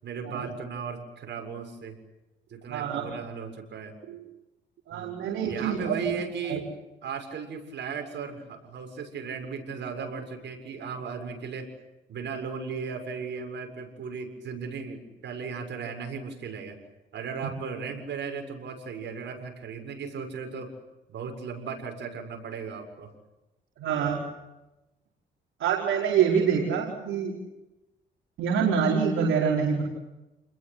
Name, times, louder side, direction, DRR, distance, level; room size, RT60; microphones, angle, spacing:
voice 1, 0.0-2.0 2.5-3.9 4.9-5.1 5.5-6.6 7.0-11.7 12.1-16.8 17.1-20.7 21.1-23.1, right 6 dB, 65° right, 4 dB, 7.0 m, -36 dB
voice 2, 2.7-3.1 4.1-4.2 4.9-5.9 6.5-6.6 23.8-24.2 25.6-27.4 28.4-29.8, right 7 dB, 80° right, -2 dB, 4.9 m, -26 dB
29.5 x 21.5 x 8.4 m, 1.0 s
cardioid pair, 90°, 20 cm